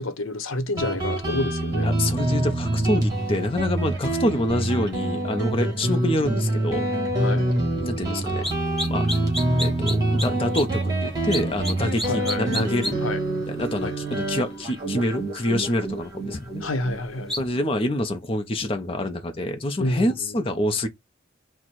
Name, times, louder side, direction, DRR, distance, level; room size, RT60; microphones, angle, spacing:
voice 1, 0.0-1.9 7.2-7.5 12.0-12.4 13.0-13.2 13.8-13.9 16.6-17.3 19.8-20.4, left 1 dB, 85° left, 0.8 m, -28 dB
Guitar, 0.8-18.0, right 1 dB, 20° right, 1.5 m, -26 dB
voice 2, 1.8-6.9 7.8-8.5 8.8-9.2 9.6-13.0 13.5-16.6 17.4-20.9, left 1 dB, 25° left, 0.6 m, -26 dB
sound 1, 8.4-8.5 8.8-10.3 10.5-10.6 11.3-11.7 12.0-12.9 17.3-17.4, left 1 dB, ahead, 1.6 m, -28 dB
4.2 x 2.1 x 4.5 m
head